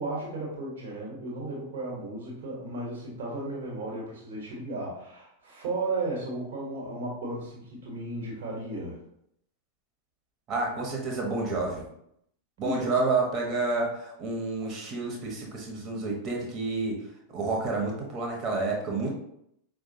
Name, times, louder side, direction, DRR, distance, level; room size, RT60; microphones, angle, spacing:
voice 1, 0.0-9.0 12.6-13.0, right 2 dB, 55° right, -4 dB, 1.3 m, -34 dB
voice 2, 10.5-11.9 12.6-17.0 17.3-19.1, right 3 dB, 35° right, 0 dB, 1.1 m, -29 dB
4.9 x 2.3 x 2.8 m, 0.74 s
figure-of-eight pair, 90°, 0 cm